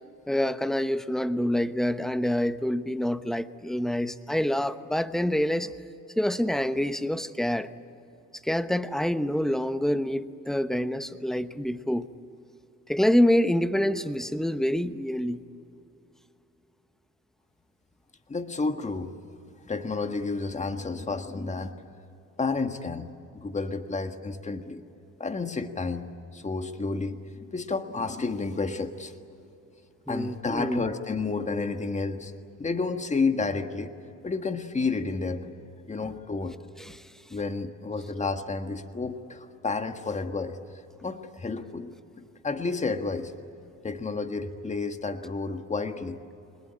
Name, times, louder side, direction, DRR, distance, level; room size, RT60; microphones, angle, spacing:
voice 1, 0.3-5.7 6.2-7.7 8.4-12.1 12.9-15.4 30.1-30.8 36.0-36.1 36.8-37.0, left 1 dB, ahead, 11 dB, 1.0 m, -26 dB
voice 2, 18.3-19.2 19.6-21.7 22.4-24.8 25.2-29.1 30.1-32.3 32.6-33.9 34.2-35.5 35.9-36.6 37.3-40.6 41.0-41.9 42.4-43.3 43.8-46.2, left 4 dB, 25° left, 7 dB, 1.6 m, -31 dB
24.5 x 20.5 x 9.9 m, 2.8 s
cardioid pair, 90°, 30 cm